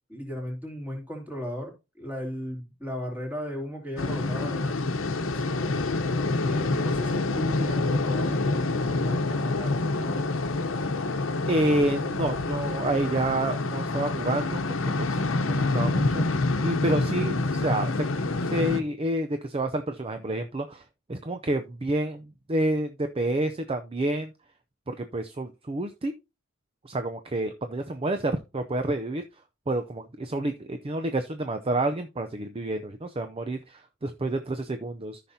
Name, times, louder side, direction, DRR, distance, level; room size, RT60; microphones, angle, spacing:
voice 1, 0.1-4.8 5.1-6.0 6.4-10.3, equal, 10° right, 3.2 m, -36 dB
sound 1, 4.0-18.8, left 2 dB, 75° left, 1.0 m, -27 dB
voice 2, 11.5-14.6 15.0-15.2 15.5-16.2 16.6-17.9 18.4-20.8 21.1-24.3 24.9-26.1 26.8-29.2 29.7-35.2, right 1 dB, 30° right, 0.6 m, -29 dB
13.5 x 5.8 x 2.8 m
head